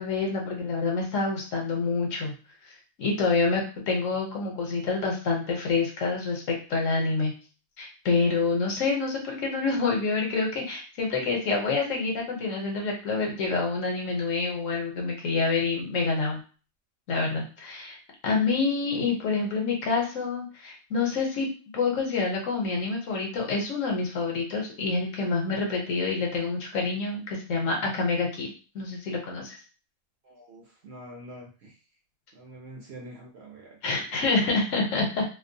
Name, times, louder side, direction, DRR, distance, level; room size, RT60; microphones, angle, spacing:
voice 1, 0.0-2.3 3.0-7.3 7.8-16.4 17.1-18.0 18.2-21.5 21.7-29.6 33.8-35.2, left 4 dB, 65° left, 0 dB, 1.1 m, -27 dB
voice 2, 30.2-31.8 32.3-34.0, right 1 dB, 60° right, -1 dB, 0.8 m, -45 dB
2.5 x 2.1 x 2.6 m, 0.36 s
omnidirectional pair, 1.5 m